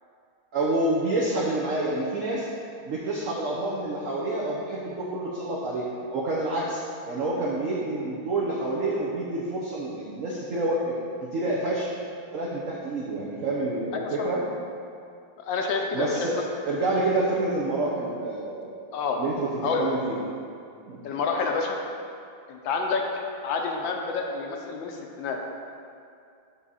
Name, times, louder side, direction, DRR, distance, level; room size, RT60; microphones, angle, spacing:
voice 1, 0.5-2.5 2.9-5.8 6.1-11.0 11.3-11.9 12.3-14.4 15.9-18.8 19.2-20.2 20.9-21.0, right 2 dB, 80° right, -4 dB, 0.7 m, -28 dB
voice 2, 13.9-14.3 15.5-16.4 18.9-19.2 19.6-19.9 21.0-21.8 22.5-23.1 23.4-25.4, left 4 dB, 75° left, 2 dB, 1.2 m, -28 dB
6.0 x 3.8 x 5.5 m, 2.4 s
omnidirectional pair, 2.3 m